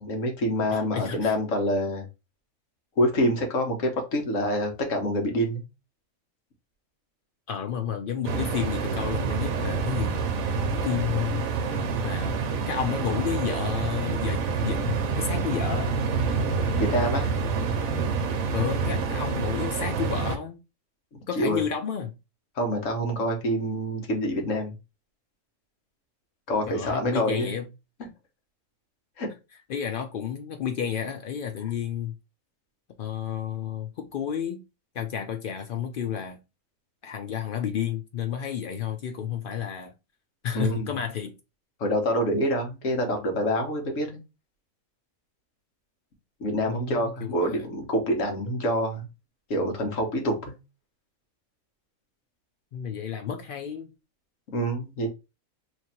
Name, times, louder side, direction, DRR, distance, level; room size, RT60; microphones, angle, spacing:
voice 1, 0.0-2.1 3.0-5.6 16.7-17.3 21.1-21.6 22.6-24.7 26.5-27.6 28.0-28.1 29.2-29.3 40.5-40.9 41.8-44.2 46.4-49.1 49.5-50.6 54.5-55.1, equal, 65° left, 1.4 m, -26 dB
voice 2, 0.7-1.3 7.5-10.1 10.7-11.5 12.0-15.9 18.5-20.6 21.3-22.1 26.7-27.7 29.7-32.1 33.0-34.6 34.9-36.4 37.0-39.9 40.4-41.3 46.7-47.7 52.7-53.9, left 8 dB, 90° left, 0.4 m, -31 dB
sound 1, 8.2-20.4, right 4 dB, 75° right, 1.1 m, -27 dB
3.1 x 2.5 x 4.2 m
omnidirectional pair, 1.4 m